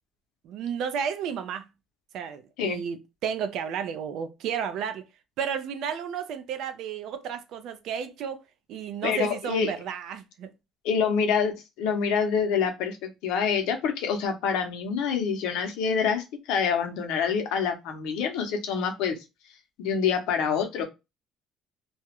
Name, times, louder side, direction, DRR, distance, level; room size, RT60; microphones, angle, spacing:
voice 1, 0.4-1.7 2.1-3.0 3.2-5.0 5.4-8.4 8.7-10.5, right 7 dB, 55° right, 0.3 m, -32 dB
voice 2, 9.0-9.7 10.8-19.2 19.8-20.8, left 6 dB, 90° left, 0.6 m, -26 dB
2.3 x 2.0 x 2.8 m
cardioid pair, 180°, 0 cm